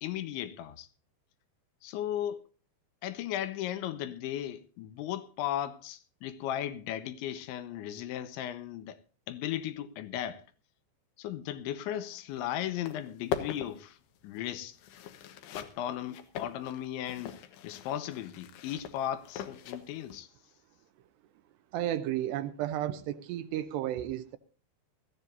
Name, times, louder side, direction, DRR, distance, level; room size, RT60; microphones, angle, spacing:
voice 1, 0.0-0.9 1.8-2.4 3.0-9.0 9.3-10.4 11.2-14.0 14.2-14.8 15.6-20.3, left 11 dB, 85° left, 3.3 m, -36 dB
sound 1, 12.3-12.4 12.7-20.2, left 9 dB, 70° left, 2.9 m, -41 dB
voice 2, 21.7-24.4, right 12 dB, 80° right, 2.7 m, -33 dB
21.5 x 14.0 x 2.6 m
omnidirectional pair, 5.3 m